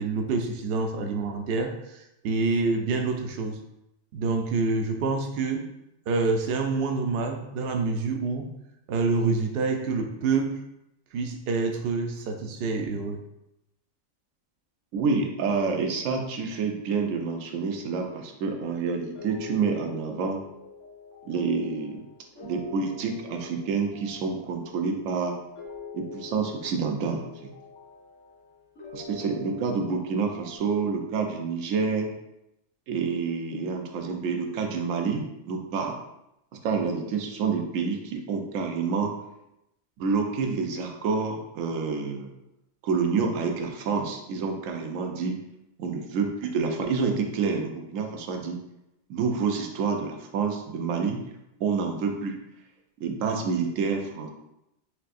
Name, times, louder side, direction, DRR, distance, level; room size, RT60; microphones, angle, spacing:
voice 1, 0.0-3.6 4.1-5.7 6.1-8.6 8.9-10.6 11.1-13.2, right 4 dB, 60° right, 4 dB, 0.6 m, -27 dB
voice 2, 14.9-20.4 21.3-22.0 22.4-25.4 25.9-27.5 28.9-32.1 32.9-36.0 36.6-39.1 40.0-42.3 42.8-45.4 45.8-48.6 49.1-51.2 51.6-52.4 53.0-54.3, right 5 dB, 80° right, 3 dB, 1.0 m, -28 dB
sound 1, 19.1-30.6, left 4 dB, 65° left, 1.4 m, -45 dB
4.6 x 3.2 x 2.5 m, 0.87 s
omnidirectional pair, 1.4 m